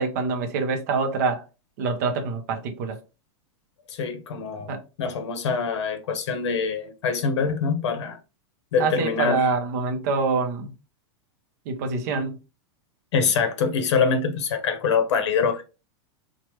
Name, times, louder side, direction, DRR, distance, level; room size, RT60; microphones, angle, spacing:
voice 1, 0.0-1.4 1.8-3.0 4.7-4.8 8.8-10.7 11.7-12.4, right 4 dB, 35° right, 0.5 m, -25 dB
voice 2, 3.9-4.7 5.0-8.2 8.7-9.5 13.1-15.6, left 5 dB, 75° left, 0.8 m, -24 dB
3.1 x 2.1 x 3.0 m
supercardioid pair, 180°, 15 cm